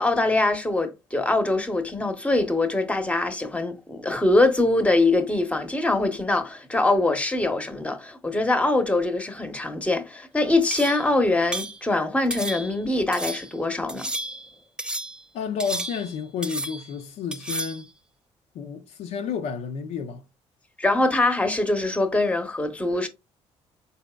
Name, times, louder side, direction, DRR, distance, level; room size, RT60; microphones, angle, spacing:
voice 1, 0.0-14.1 20.8-23.1, left 2 dB, 10° left, 0.8 m, -23 dB
sound 1, 10.7-11.1 11.5-11.8 12.3-12.8 13.1-13.5 13.9-14.5 14.8-15.2 15.6-16.2 16.4-17.0 17.3-17.8, right 1 dB, 5° right, 0.5 m, -32 dB
voice 2, 15.3-17.9 18.5-20.2, left 6 dB, 70° left, 0.6 m, -31 dB
4.2 x 4.0 x 2.2 m
cardioid pair, 90°, 12 cm